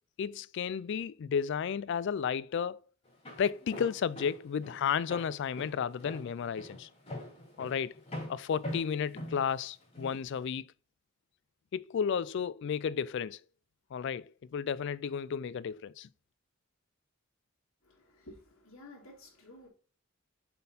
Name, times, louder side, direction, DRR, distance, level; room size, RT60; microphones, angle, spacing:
voice 1, 0.2-2.8 3.4-6.9 7.6-7.9 8.3-10.7 11.7-13.4 13.9-16.1, left 7 dB, 55° left, 0.3 m, -33 dB
Walk footsteps, 3.0-10.2, left 1 dB, 30° left, 3.6 m, -43 dB
voice 2, 17.8-19.7, left 1 dB, 80° left, 3.1 m, -53 dB
6.9 x 4.3 x 4.0 m
head